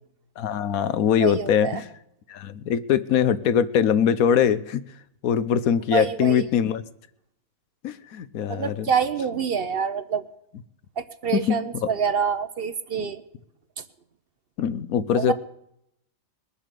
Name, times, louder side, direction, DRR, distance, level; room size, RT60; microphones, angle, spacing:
voice 1, 0.4-1.8 2.3-4.8 5.2-6.8 7.8-8.9 11.3-11.6 14.6-15.3, left 8 dB, 90° left, 14 dB, 1.2 m, -22 dB
voice 2, 1.2-1.8 5.9-6.5 8.5-10.3 11.0-13.2 15.1-15.3, right 6 dB, 50° right, 12 dB, 0.8 m, -26 dB
21.0 x 7.2 x 6.7 m, 0.76 s
omnidirectional pair, 1.4 m